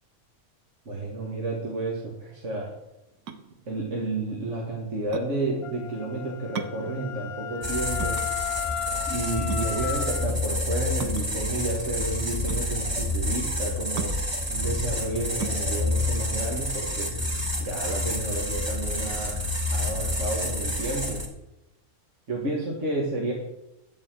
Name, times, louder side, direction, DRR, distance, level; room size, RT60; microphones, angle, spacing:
voice 1, 0.9-2.7 3.7-8.2 9.1-14.1 14.5-17.1 17.6-19.4 19.7-21.2 22.3-23.3, right 2 dB, 55° right, -3 dB, 2.2 m, -31 dB
sound 1, 3.1-17.5, right 7 dB, 85° right, 1.4 m, -40 dB
Wind instrument woodwind instrument, 5.6-10.3, left 10 dB, 90° left, 1.4 m, -34 dB
sound 2, 7.6-21.3, left 1 dB, 20° right, 1.7 m, -29 dB
12.0 x 4.6 x 8.3 m, 0.91 s
omnidirectional pair, 1.5 m